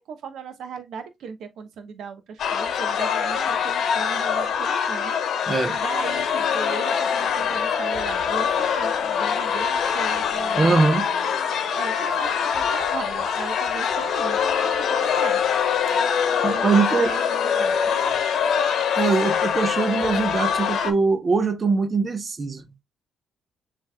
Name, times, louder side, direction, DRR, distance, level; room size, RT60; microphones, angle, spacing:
voice 1, 0.0-10.7 11.1-11.3 11.7-15.4 16.4-18.1, right 6 dB, 75° right, 1.0 m, -37 dB
sound 1, 2.4-20.9, left 7 dB, 65° left, 0.9 m, -24 dB
voice 2, 10.5-11.1 16.4-17.2 19.0-22.7, right 4 dB, 35° right, 0.8 m, -22 dB
7.2 x 3.3 x 2.2 m
cardioid pair, 90°, 0 cm